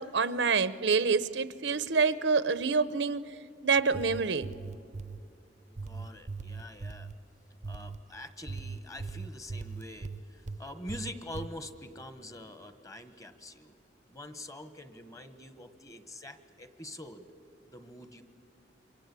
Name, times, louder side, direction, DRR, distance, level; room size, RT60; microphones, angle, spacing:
voice 1, 0.0-3.2 3.6-4.5, right 5 dB, 85° right, 14 dB, 0.8 m, -27 dB
sound 1, 3.8-5.2 5.8-7.2 7.6-8.0 8.5-10.6 10.9-11.5, right 4 dB, 40° right, 0.6 m, -39 dB
voice 2, 5.8-7.1 7.7-13.8 14.1-17.3 17.7-18.2, left 1 dB, 20° left, 10 dB, 1.3 m, -45 dB
28.0 x 24.5 x 8.3 m, 2.5 s
head